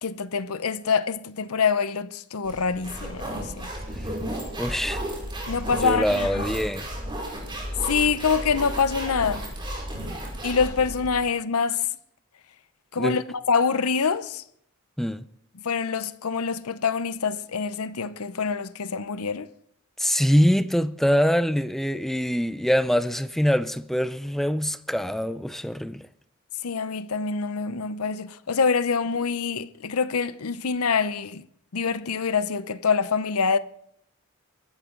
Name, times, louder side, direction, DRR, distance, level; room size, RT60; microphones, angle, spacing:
voice 1, 0.0-3.7 5.5-6.5 7.9-9.5 10.4-11.8 12.9-14.4 15.6-19.5 26.6-31.4 31.7-33.6, left 5 dB, 85° left, 0.7 m, -25 dB
sound 1, 2.4-11.2, right 1 dB, 20° right, 5.8 m, -33 dB
voice 2, 4.6-5.0 5.7-6.9 13.0-13.2 15.0-15.3 20.0-26.1, equal, ahead, 0.5 m, -24 dB
23.0 x 13.5 x 3.8 m
head